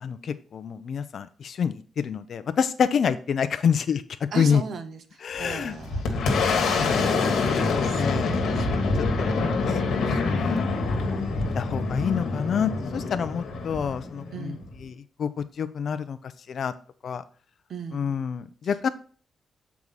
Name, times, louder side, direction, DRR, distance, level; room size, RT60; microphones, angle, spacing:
voice 1, 0.0-4.0 4.4-4.6 5.2-5.8 6.1-7.3 7.6-8.3 9.2-9.3 9.6-10.6 11.5-14.5 14.8-14.9 15.2-15.3 15.6-16.2 16.5-16.7 17.0-17.2 17.9-18.9, left 7 dB, 60° left, 11 dB, 0.6 m, -27 dB
voice 2, 4.3-6.3 6.8-8.2 8.6-8.7 14.3-14.6 17.7-18.1 18.6-18.9, right 5 dB, 65° right, 9 dB, 0.9 m, -38 dB
Boom, 5.4-14.8, left 3 dB, 85° left, 1.4 m, -26 dB
Wind instrument woodwind instrument, 8.9-14.6, equal, ahead, 1.6 m, -43 dB
7.2 x 4.8 x 4.0 m, 0.42 s
cardioid pair, 115°, 0 cm